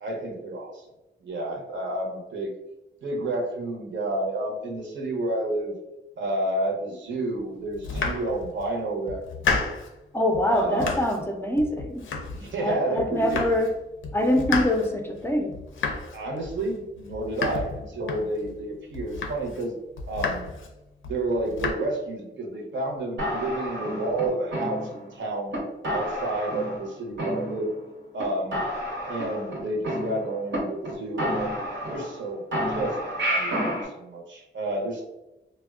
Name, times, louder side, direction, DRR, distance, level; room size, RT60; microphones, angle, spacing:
voice 1, 0.0-0.9 1.2-2.5 3.0-5.8 6.2-9.5 10.5-10.9 12.3-13.4 16.1-19.7 20.1-20.5 21.0-25.6 25.9-27.7 28.1-28.6 29.1-31.5 31.9-32.4 32.7-33.0 33.2-35.0, right 2 dB, 70° right, 0 dB, 0.6 m, -30 dB
Domestic sounds home sounds, 7.7-8.7 9.1-10.0 10.3-11.3 11.6-12.7 13.0-13.8 14.0-18.6 18.9-19.6 20.0-20.7 21.0-21.7, left 4 dB, 90° left, 0.4 m, -32 dB
voice 2, 10.1-12.0 12.6-13.7 14.1-15.6, left 1 dB, 10° left, 3 dB, 0.3 m, -24 dB
sound 1, 23.2-25.1 25.5-25.6 25.8-26.9 27.2-27.9 28.2-28.3 28.5-30.6 30.8-30.9 31.2-32.2 32.5-33.9, equal, 90° right, 0.9 m, -30 dB
3.4 x 2.1 x 2.3 m, 0.97 s
wide cardioid pair, 130°, 20 cm